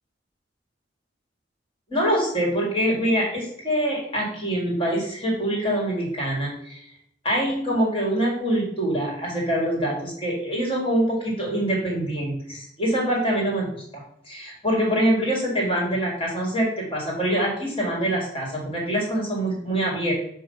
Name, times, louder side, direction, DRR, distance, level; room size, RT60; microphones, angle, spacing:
voice 1, 1.9-6.8 7.2-20.1, right 1 dB, 30° left, -2 dB, 2.1 m, -25 dB
7.1 x 2.7 x 5.4 m, 0.71 s
head